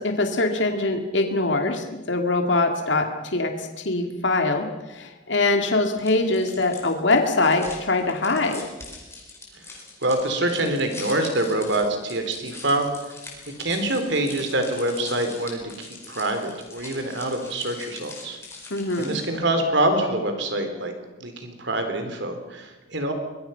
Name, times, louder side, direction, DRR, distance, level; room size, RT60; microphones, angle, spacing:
voice 1, 0.0-8.6 18.7-19.2, left 2 dB, 65° left, 5 dB, 2.4 m, -23 dB
sound 1, 6.0-19.4, left 3 dB, 15° left, 4.6 m, -42 dB
voice 2, 10.0-12.9 13.5-18.4 19.0-20.9 21.2-23.1, right 1 dB, 60° right, 6 dB, 3.7 m, -25 dB
25.0 x 21.5 x 5.8 m, 1.1 s
head